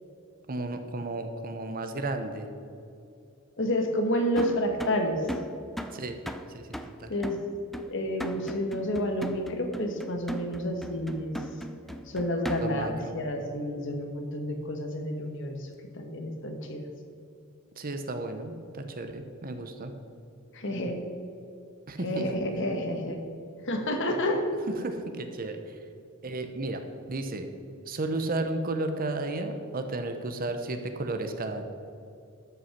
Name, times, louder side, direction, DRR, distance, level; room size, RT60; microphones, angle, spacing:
voice 1, 0.5-2.5 5.9-6.2 6.5-7.1 12.6-13.1 17.8-19.9 21.9-22.2 24.8-25.8 26.2-26.8 27.1-27.5 27.9-31.6, right 2 dB, 40° right, 7 dB, 0.8 m, -33 dB
voice 2, 3.6-5.2 7.1-7.4 7.8-11.4 12.1-15.7 15.9-16.8 20.5-21.0 22.0-23.2 23.6-24.4, equal, 60° left, 4 dB, 1.4 m, -30 dB
sound 1, 4.4-13.0, equal, ahead, 0.4 m, -39 dB
12.5 x 5.7 x 5.8 m, 2.5 s
head